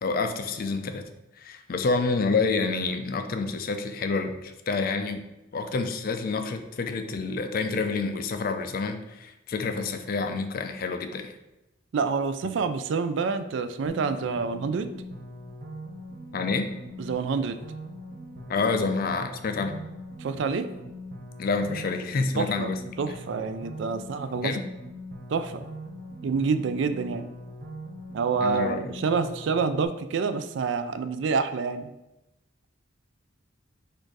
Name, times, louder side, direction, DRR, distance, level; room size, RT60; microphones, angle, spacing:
voice 1, 0.0-1.1 1.4-5.2 5.5-11.3 12.4-12.5 16.3-16.7 18.5-19.8 21.4-22.8 24.4-24.6 28.4-28.9, left 4 dB, 45° left, 7 dB, 0.4 m, -28 dB
voice 2, 11.9-14.9 17.0-17.6 20.2-20.7 22.4-22.7 23.0-24.5 25.3-25.6 26.2-27.3 28.1-31.9, right 5 dB, 60° right, 11 dB, 0.3 m, -27 dB
sound 1, 13.9-29.9, equal, 45° right, 0.7 m, -41 dB
4.3 x 2.6 x 4.6 m, 0.94 s
head